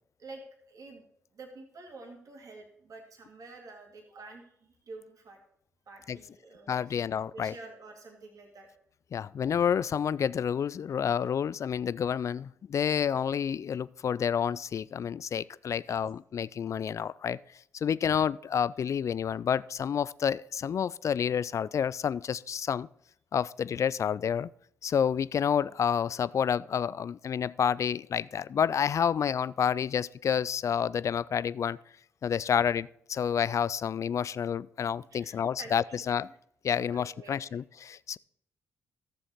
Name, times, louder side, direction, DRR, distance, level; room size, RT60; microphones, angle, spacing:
voice 1, 0.2-1.1 1.3-5.4 5.9-8.7 15.9-16.0 35.1-36.0 36.9-37.6, right 3 dB, 55° right, 1 dB, 2.2 m, -49 dB
voice 2, 6.7-7.5 9.1-17.4 17.7-22.9 23.3-24.5 24.8-31.8 32.2-36.3 36.6-38.2, left 8 dB, 50° left, 20 dB, 0.3 m, -29 dB
13.0 x 7.0 x 4.2 m, 0.71 s
hypercardioid pair, 45°, 7 cm